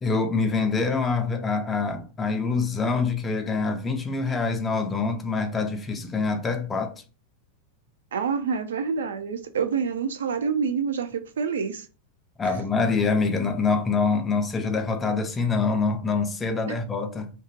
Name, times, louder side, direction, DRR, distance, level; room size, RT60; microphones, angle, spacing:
voice 1, 0.0-6.9 12.4-17.3, left 4 dB, 20° left, 0.4 m, -25 dB
voice 2, 8.1-11.9 16.7-16.8, right 6 dB, 65° right, 0.3 m, -27 dB
2.8 x 2.3 x 2.6 m
figure-of-eight pair, 90°, 0 cm